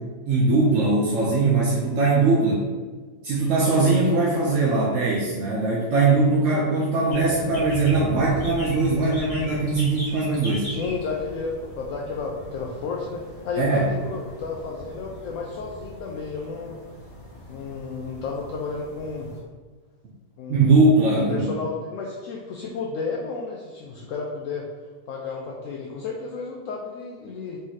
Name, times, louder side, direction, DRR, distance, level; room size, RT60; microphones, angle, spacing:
voice 1, 0.3-2.7 3.2-10.7 13.6-13.9 20.5-21.6, right 3 dB, 60° right, -5 dB, 0.9 m, -20 dB
sound 1, 7.1-19.4, left 1 dB, 25° left, 1.1 m, -39 dB
voice 2, 10.7-16.8 17.5-19.3 20.4-20.8 21.2-24.7 25.1-27.6, left 4 dB, 70° left, -2 dB, 0.8 m, -32 dB
4.0 x 3.0 x 3.9 m, 1.4 s
omnidirectional pair, 1.8 m